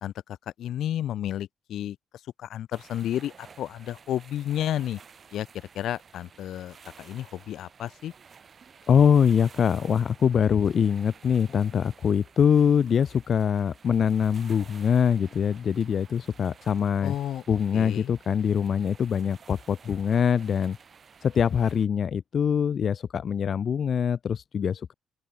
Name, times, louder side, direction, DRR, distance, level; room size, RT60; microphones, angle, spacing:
voice 1, 0.6-2.0 2.4-5.0 5.3-8.1 17.0-17.4 17.7-18.1, left 11 dB, 75° left, 1.6 m, -32 dB
sound 1, 2.7-21.9, right 6 dB, 45° right, 2.8 m, -53 dB
voice 2, 8.9-17.1 17.5-20.8 21.2-24.9, left 7 dB, 55° left, 0.6 m, -23 dB
open air
cardioid pair, 90°, 0 cm